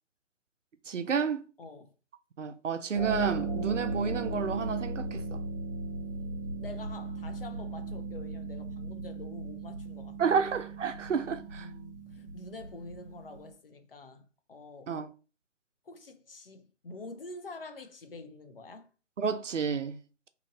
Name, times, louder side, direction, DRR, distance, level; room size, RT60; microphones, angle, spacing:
voice 1, 0.9-1.4 2.4-5.4 10.2-11.7 14.9-15.1 19.2-20.0, right 6 dB, 75° right, 0.5 m, -30 dB
voice 2, 1.6-1.9 6.0-10.3 11.5-14.9 15.9-18.9, left 2 dB, 50° left, 0.7 m, -47 dB
Harp, 2.9-13.5, right 3 dB, 15° right, 0.6 m, -37 dB
3.0 x 2.5 x 3.7 m
figure-of-eight pair, 145°, 37 cm